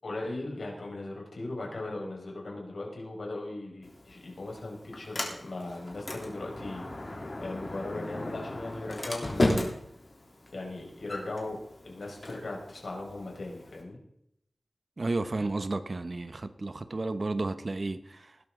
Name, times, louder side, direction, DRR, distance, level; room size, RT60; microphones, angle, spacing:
voice 1, 0.0-6.8 7.4-9.7 10.5-11.6 11.8-14.0, left 2 dB, 70° left, 5.0 m, -38 dB
Sliding door, 3.8-13.8, left 1 dB, 45° left, 3.3 m, -35 dB
voice 2, 15.0-18.4, right 2 dB, 50° right, 0.9 m, -32 dB
19.5 x 12.5 x 3.8 m
wide cardioid pair, 80°, 0 cm